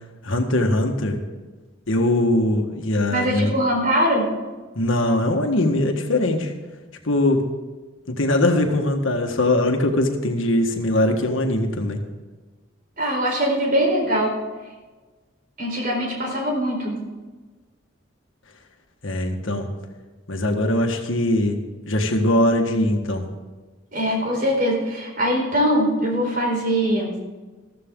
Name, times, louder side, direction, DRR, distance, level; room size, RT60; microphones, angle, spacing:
voice 1, 0.2-1.2 1.9-3.5 4.7-6.5 7.0-7.5 8.1-12.0 19.0-19.7 20.3-21.6 21.9-23.3, left 1 dB, 75° left, 4 dB, 1.7 m, -21 dB
voice 2, 3.1-4.3 13.0-14.4 15.6-17.0 23.9-27.1, equal, 45° right, 0 dB, 4.2 m, -22 dB
14.5 x 14.5 x 3.8 m, 1.3 s
head